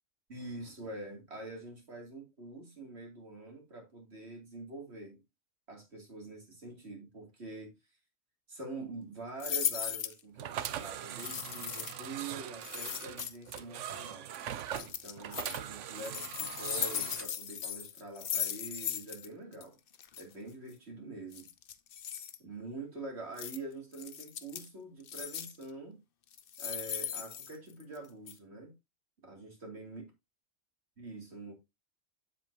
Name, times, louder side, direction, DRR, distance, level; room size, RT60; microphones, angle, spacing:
voice 1, 0.3-5.2 5.7-7.7 8.5-14.3 14.8-19.8 20.2-21.5 22.4-26.0 26.6-28.7 29.2-30.1 31.0-31.5, right 2 dB, 55° right, 3.2 m, -45 dB
sound 1, 9.4-10.2 11.2-12.0 12.6-13.6 14.7-15.6 15.9-19.3 19.5-19.6 19.9-20.2 21.3-22.4 23.4-23.6 23.9-24.7 25.1-25.6 26.3-28.0 28.3-28.4, left 9 dB, 55° left, 0.8 m, -37 dB
sound 2, 10.4-17.3, right 10 dB, 75° right, 1.0 m, -41 dB
7.8 x 7.6 x 2.8 m
omnidirectional pair, 1.3 m